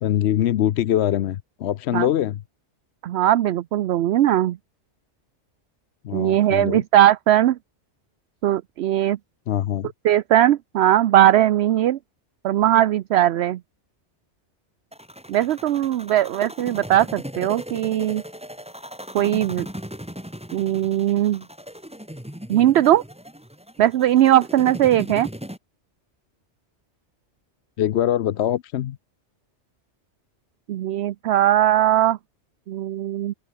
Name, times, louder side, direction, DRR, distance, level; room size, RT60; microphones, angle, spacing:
voice 1, 0.0-2.4 6.0-6.8 9.5-9.9 27.8-29.0, left 11 dB, 70° left, 0.9 m, -23 dB
voice 2, 3.0-4.6 6.1-7.6 8.4-9.2 10.0-12.0 12.4-13.6 15.3-18.2 19.1-19.7 20.5-21.4 22.5-23.0 23.8-25.3 30.7-32.2 32.7-33.3, right 12 dB, 70° right, 0.8 m, -19 dB
sound 1, 14.9-25.6, equal, 5° right, 3.4 m, -37 dB
omnidirectional pair, 1.2 m